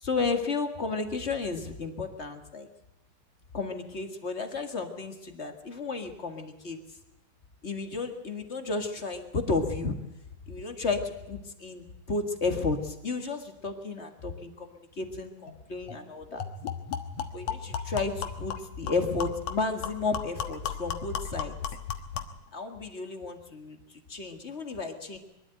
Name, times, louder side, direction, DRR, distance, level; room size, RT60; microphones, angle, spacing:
voice 1, 0.0-2.7 3.5-6.8 7.6-10.0 10.5-16.4 17.3-21.5 22.5-25.2, left 3 dB, 30° left, 6 dB, 1.2 m, -32 dB
sound 1, 15.5-15.6 15.9-16.0 16.4-22.4, left 7 dB, 60° left, 2.1 m, -36 dB
23.0 x 13.0 x 9.1 m, 0.94 s
omnidirectional pair, 4.0 m